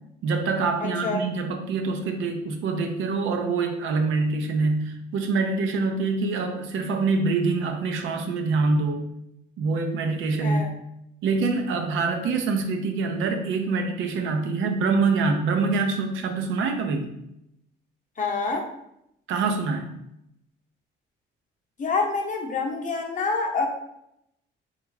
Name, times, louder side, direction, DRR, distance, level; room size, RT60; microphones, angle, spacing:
voice 1, 0.2-9.1 9.6-10.7 11.2-17.1 19.3-19.9, right 4 dB, 85° right, 5 dB, 0.5 m, -25 dB
voice 2, 0.8-1.2 10.4-10.7 18.2-18.7 21.8-23.7, left 4 dB, 40° left, 1 dB, 0.7 m, -27 dB
3.4 x 2.4 x 3.2 m, 0.80 s
cardioid pair, 90°, 20 cm